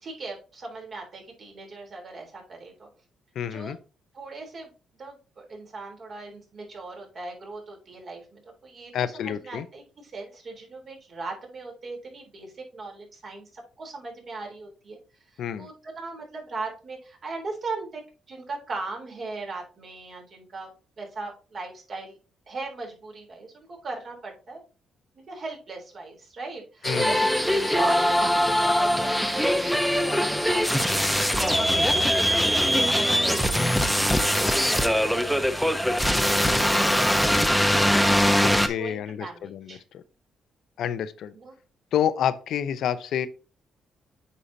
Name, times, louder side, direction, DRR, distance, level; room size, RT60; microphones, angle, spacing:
voice 1, 0.0-2.9 3.5-3.7 4.1-15.0 15.3-18.0 18.3-20.7 21.0-22.2 22.5-24.6 25.3-33.5 34.3-39.8 41.3-41.5, right 3 dB, 45° right, 3.5 m, -39 dB
voice 2, 3.3-3.8 8.9-9.7 15.4-15.7 26.8-27.2 38.4-40.0 40.8-41.3 41.9-43.3, left 9 dB, 75° left, 0.7 m, -28 dB
sound 1, 26.8-38.7, equal, ahead, 0.9 m, -22 dB
8.2 x 5.6 x 2.8 m
cardioid pair, 90°, 0 cm